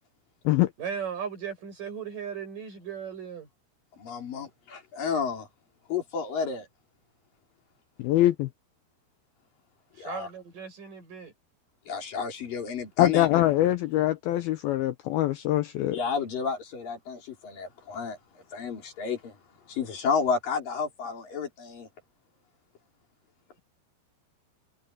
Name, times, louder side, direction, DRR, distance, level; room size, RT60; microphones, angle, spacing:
voice 1, 0.8-3.5 9.9-11.3, right 7 dB, 45° right, 8.7 m, -37 dB
voice 2, 4.0-5.5 5.9-6.7 10.0-10.3 11.9-13.4 15.9-18.2 18.5-19.3 19.7-21.9, left 5 dB, 50° left, 5.6 m, -31 dB
voice 3, 8.0-8.5 13.0-16.0, left 15 dB, 85° left, 2.2 m, -23 dB
omnidirectional pair, 5.2 m